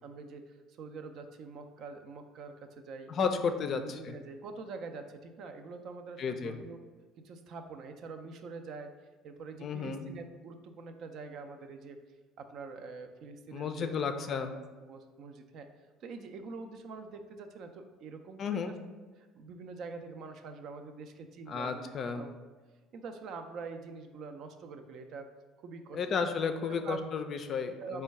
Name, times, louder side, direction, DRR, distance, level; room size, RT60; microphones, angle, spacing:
voice 1, 0.0-3.1 3.6-6.8 7.2-8.9 9.2-12.0 12.4-14.2 14.9-15.7 16.0-18.7 19.2-22.3 22.9-25.3 25.6-26.0 26.8-27.0 27.8-28.0, right 4 dB, 55° right, 7 dB, 0.4 m, -45 dB
voice 2, 3.1-4.1 6.2-6.5 9.6-10.1 13.5-14.5 18.4-18.7 21.5-22.2 25.9-28.0, left 5 dB, 45° left, 7 dB, 0.4 m, -33 dB
4.3 x 2.2 x 4.6 m, 1.3 s
hypercardioid pair, 60°, 0 cm